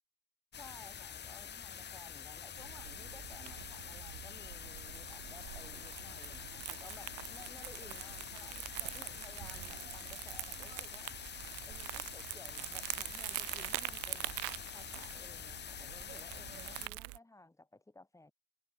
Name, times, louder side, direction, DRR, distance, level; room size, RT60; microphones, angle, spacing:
sound 1, 0.5-16.9, left 8 dB, 30° left, 1.5 m, -46 dB
voice 1, 0.6-11.1 11.6-14.4 14.7-18.3, left 2 dB, 10° left, 3.1 m, -57 dB
Crumpling crinkling, 2.6-17.2, right 33 dB, 75° right, 1.8 m, -45 dB
supercardioid pair, 120°, 37 cm